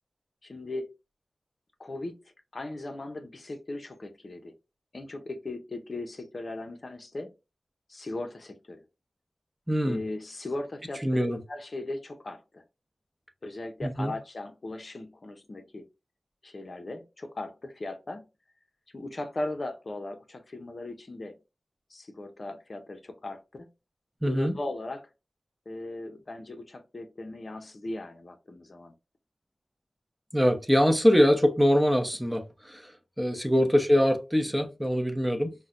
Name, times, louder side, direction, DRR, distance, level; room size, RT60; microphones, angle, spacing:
voice 1, 0.4-0.9 1.8-2.2 2.5-4.5 4.9-7.3 7.9-8.8 9.8-12.6 13.4-15.8 16.4-18.2 18.9-21.4 21.9-23.7 24.3-25.1 25.7-28.9 33.6-33.7, left 2 dB, 55° left, 0.6 m, -38 dB
voice 2, 9.7-10.0 11.0-11.4 13.8-14.1 24.2-24.6 30.3-32.9 33.2-35.5, equal, 5° right, 0.8 m, -23 dB
5.5 x 2.1 x 2.5 m
cardioid pair, 45°, 0 cm